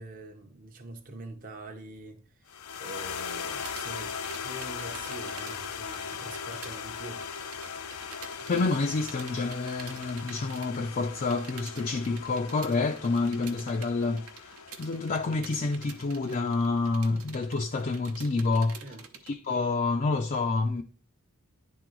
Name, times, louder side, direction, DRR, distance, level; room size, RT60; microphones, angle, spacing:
voice 1, 0.0-4.1 4.4-7.3 18.8-19.1, right 2 dB, 40° right, 0.7 m, -44 dB
sound 1, 2.5-16.9, left 6 dB, 90° left, 0.6 m, -39 dB
sound 2, 3.5-6.8 7.0-19.3, right 6 dB, 75° right, 0.8 m, -48 dB
voice 2, 8.5-18.8 19.3-20.8, left 3 dB, 35° left, 0.4 m, -28 dB
10.5 x 3.8 x 3.0 m
head